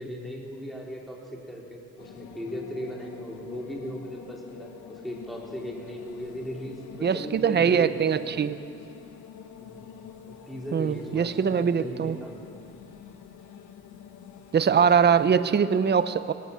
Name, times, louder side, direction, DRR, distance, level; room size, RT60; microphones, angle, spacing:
voice 1, 0.0-8.2 9.6-9.9 10.3-12.4 15.1-15.3, equal, ahead, -2 dB, 4.1 m, -38 dB
sound 1, 2.0-15.4, left 7 dB, 80° left, 1.4 m, -47 dB
voice 2, 7.0-8.6 10.7-12.2 14.5-16.3, right 7 dB, 35° right, 13 dB, 0.8 m, -22 dB
19.0 x 18.5 x 8.8 m, 2.5 s
cardioid pair, 90°, 30 cm